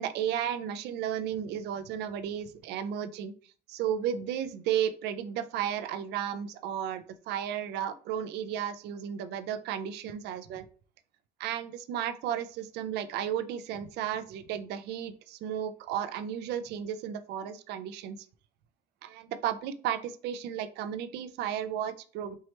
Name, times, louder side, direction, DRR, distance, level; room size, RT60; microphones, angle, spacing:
voice 1, 0.0-3.3 3.7-10.7 11.4-18.2 19.0-22.4, right 9 dB, 80° right, 10 dB, 0.5 m, -33 dB
4.6 x 3.1 x 2.9 m, 0.41 s
cardioid pair, 110°, 17 cm